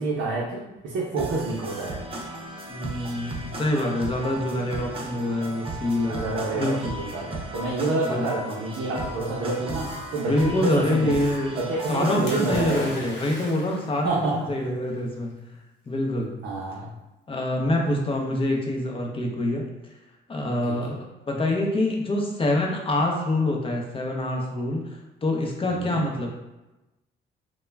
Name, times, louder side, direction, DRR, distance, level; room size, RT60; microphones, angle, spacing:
voice 1, 0.0-2.0 4.3-4.5 6.1-9.9 10.1-11.2 11.6-13.1 14.0-14.3 16.4-16.9 20.7-20.8 25.7-26.0, right 3 dB, 75° right, -5 dB, 0.6 m, -28 dB
sound 1, 1.2-12.9, right 2 dB, 30° right, 0.4 m, -36 dB
voice 2, 2.7-6.7 8.0-8.3 10.2-11.5 11.9-15.4 15.9-16.4 17.3-19.7 20.3-21.0 21.3-26.3, left 1 dB, 25° left, 0 dB, 0.5 m, -26 dB
Splash splatter, 12.3-14.1 15.0-15.1, left 1 dB, 70° left, 0.6 m, -38 dB
2.2 x 2.1 x 3.3 m, 1.0 s
cardioid pair, 90°, 20 cm